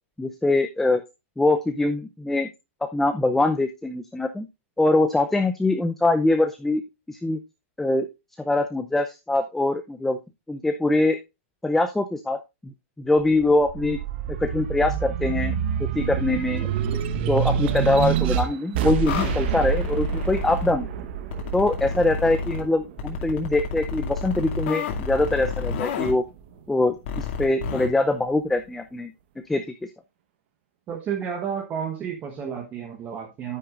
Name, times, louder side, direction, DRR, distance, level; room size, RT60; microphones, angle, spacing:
voice 1, 0.2-1.0 1.4-2.5 2.8-4.5 4.8-6.8 7.1-7.4 7.8-8.1 8.4-10.2 10.5-11.2 11.6-12.7 13.0-14.0 14.3-15.5 15.8-16.7 17.3-20.9 21.5-26.2 26.7-29.1 29.5-29.6, left 2 dB, 5° left, 0.5 m, -23 dB
sound 1, 13.2-24.0 24.5-25.6, right 8 dB, 50° right, 1.1 m, -27 dB
sound 2, 19.0-20.7 21.3-22.6 23.0-26.1 27.1-27.9, left 5 dB, 55° left, 2.4 m, -30 dB
voice 2, 30.9-33.6, right 7 dB, 20° right, 1.1 m, -31 dB
9.7 x 9.2 x 2.5 m
supercardioid pair, 160°, 7 cm